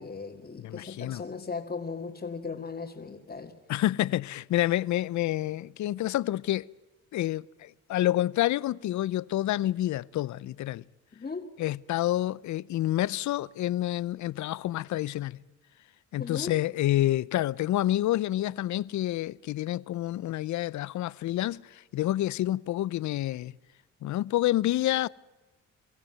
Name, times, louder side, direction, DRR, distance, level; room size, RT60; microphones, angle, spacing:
voice 1, 0.0-3.5 11.1-11.5 16.2-16.6, left 4 dB, 30° left, 2.2 m, -37 dB
voice 2, 0.6-1.2 3.7-6.7 7.1-10.8 11.6-15.4 16.1-23.5 24.0-25.1, left 14 dB, 70° left, 0.6 m, -28 dB
25.0 x 15.0 x 9.1 m
cardioid pair, 90°, 30 cm